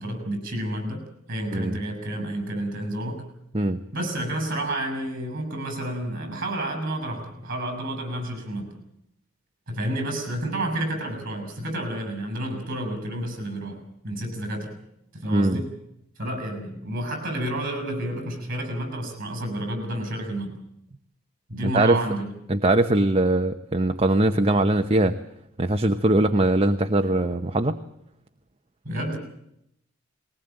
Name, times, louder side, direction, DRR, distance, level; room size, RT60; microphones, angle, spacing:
voice 1, 0.0-3.2 3.9-8.7 9.7-14.8 15.1-15.7 16.2-20.6 21.5-22.4 28.8-29.2, right 1 dB, 45° right, 6 dB, 7.9 m, -30 dB
voice 2, 15.3-15.6 21.7-22.0 22.5-25.1 25.6-27.8, right 2 dB, 30° right, 7 dB, 0.9 m, -21 dB
21.0 x 19.0 x 8.9 m, 0.78 s
head